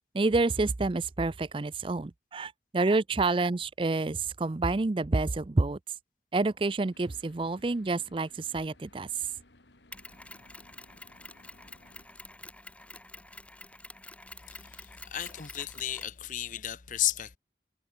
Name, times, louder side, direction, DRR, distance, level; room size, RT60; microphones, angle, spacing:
voice 1, 0.1-5.8 6.3-9.1, right 3 dB, 30° right, 0.5 m, -28 dB
sound 1, 6.9-12.1, left 2 dB, 80° left, 3.1 m, -60 dB
Mechanisms, 9.9-16.2, left 2 dB, 5° left, 3.0 m, -48 dB
voice 2, 14.5-17.4, left 12 dB, 45° left, 0.7 m, -33 dB
head